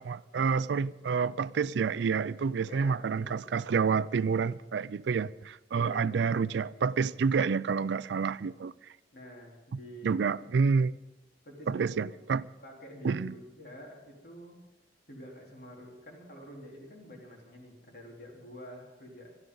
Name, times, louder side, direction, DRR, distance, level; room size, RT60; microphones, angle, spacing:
voice 1, 0.0-8.9 10.0-11.0 11.7-12.4 13.0-13.3, right 5 dB, 80° right, 0.4 m, -29 dB
voice 2, 2.6-3.5 5.7-6.2 9.1-10.2 11.4-12.2 12.6-14.6 15.1-19.3, equal, 65° left, 3.9 m, -48 dB
22.0 x 13.0 x 3.9 m
head